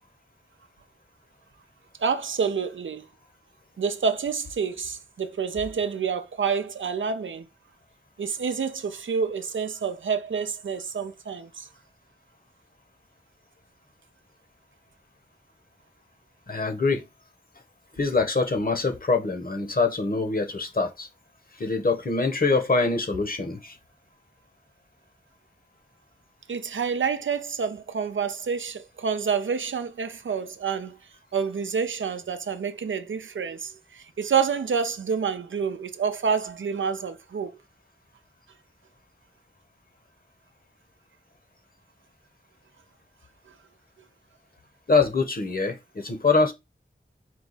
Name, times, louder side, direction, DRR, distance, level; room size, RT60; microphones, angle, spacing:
voice 1, 2.0-3.1 3.8-7.5 8.2-11.7 26.5-31.0 31.3-37.6 43.5-43.6, right 6 dB, 85° right, 0.5 m, -28 dB
voice 2, 16.5-17.1 17.9-21.1 21.6-23.8 44.9-46.5, left 3 dB, 50° left, 1.1 m, -24 dB
4.6 x 2.3 x 4.0 m
wide cardioid pair, 45°, 19 cm